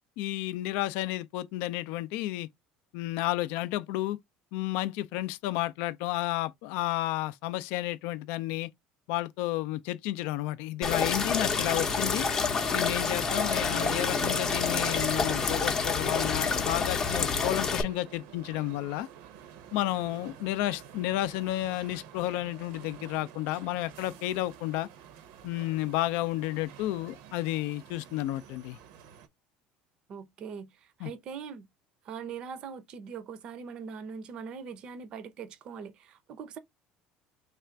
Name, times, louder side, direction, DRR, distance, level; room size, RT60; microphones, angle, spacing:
voice 1, 0.2-2.5 2.9-4.2 4.5-8.7 9.1-12.3 12.7-19.1 19.7-24.9 25.4-28.8 31.0-31.1, left 15 dB, 70° left, 0.4 m, -31 dB
sound 1, 10.8-17.8, left 5 dB, 20° left, 0.6 m, -28 dB
sound 2, 11.3-29.3, right 8 dB, 75° right, 0.7 m, -46 dB
voice 2, 30.1-31.7 32.0-36.6, right 6 dB, 35° right, 0.5 m, -41 dB
3.3 x 2.4 x 4.4 m
cardioid pair, 165°, 3 cm